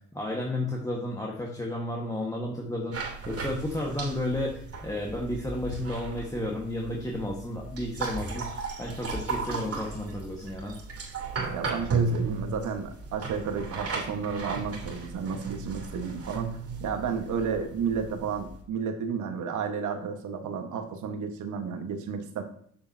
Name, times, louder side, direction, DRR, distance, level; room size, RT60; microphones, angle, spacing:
voice 1, 0.1-10.7, left 1 dB, 10° left, -2 dB, 1.5 m, -32 dB
sound 1, 2.9-18.6, right 4 dB, 50° right, 2.6 m, -35 dB
voice 2, 11.5-22.4, right 6 dB, 75° right, 5 dB, 1.5 m, -32 dB
7.8 x 6.7 x 2.8 m, 0.62 s
cardioid pair, 90°, 30 cm